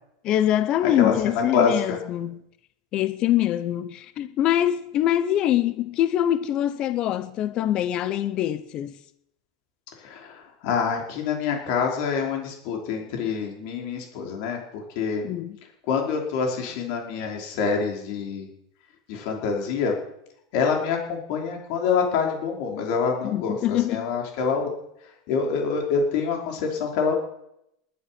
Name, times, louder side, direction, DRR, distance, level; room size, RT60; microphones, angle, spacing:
voice 1, 0.2-2.4 2.9-9.0 15.2-15.6 23.2-24.1, left 12 dB, 30° left, 0.8 m, -24 dB
voice 2, 1.5-2.0 10.0-15.2 15.9-18.5 19.1-19.9 20.5-24.7 25.3-27.1, left 5 dB, 50° left, 4.9 m, -26 dB
19.5 x 11.5 x 6.0 m
supercardioid pair, 165°, 3 cm